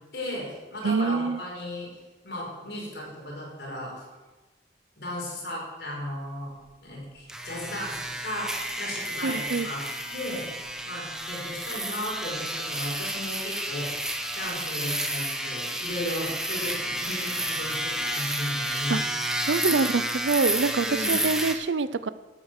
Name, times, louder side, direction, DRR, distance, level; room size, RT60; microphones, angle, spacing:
voice 1, 0.1-1.9 2.2-4.0 5.0-6.5 6.8-10.5 10.9-19.1 20.9-21.2, left 1 dB, 60° left, -3 dB, 5.2 m, -35 dB
voice 2, 0.8-1.4 9.2-9.7 18.9-19.0 19.5-22.1, right 4 dB, 90° right, 15 dB, 0.6 m, -25 dB
sound 1, 7.3-21.6, right 1 dB, 5° right, 1.0 m, -31 dB
13.0 x 8.6 x 6.6 m, 1.2 s
head